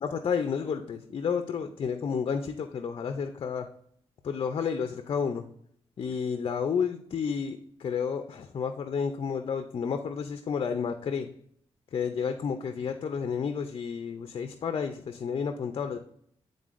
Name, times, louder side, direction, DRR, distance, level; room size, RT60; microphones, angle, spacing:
voice 1, 0.0-3.7 4.2-5.4 6.0-11.3 11.9-16.0, left 6 dB, 55° left, 7 dB, 0.5 m, -31 dB
9.8 x 3.8 x 2.5 m, 0.66 s
cardioid pair, 110°, 10 cm